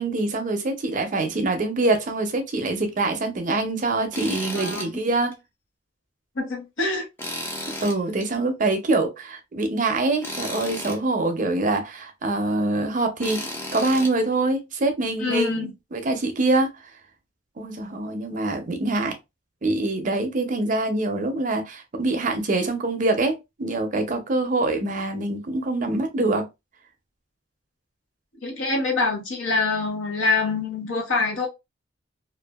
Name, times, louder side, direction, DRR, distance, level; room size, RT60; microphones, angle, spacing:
voice 1, 0.0-5.4 7.8-16.7 17.6-19.2 19.6-26.5, right 2 dB, 40° right, 0.5 m, -24 dB
Tools, 4.1-4.9 5.3-5.4 7.2-8.3 10.2-11.0 13.2-14.1, left 1 dB, 10° left, 0.5 m, -33 dB
voice 2, 4.6-5.0 6.4-7.1 15.2-15.7 28.4-31.5, left 3 dB, 85° left, 1.0 m, -25 dB
2.6 x 2.3 x 2.3 m
head